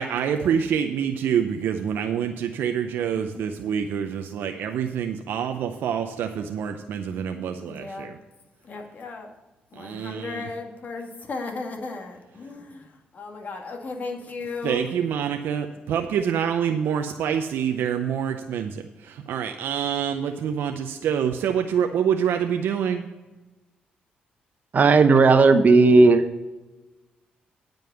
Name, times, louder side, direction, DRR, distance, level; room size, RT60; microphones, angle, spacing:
voice 1, 0.0-8.2 9.8-10.5 14.6-23.1, right 8 dB, 80° right, 5 dB, 0.6 m, -26 dB
voice 2, 3.0-3.6 7.6-8.1 8.6-9.3 9.7-14.9, left 3 dB, 50° left, 2 dB, 2.0 m, -36 dB
voice 3, 24.7-26.2, right 3 dB, 50° right, 9 dB, 0.9 m, -14 dB
9.3 x 5.3 x 8.0 m, 1.1 s
cardioid pair, 75°, 4 cm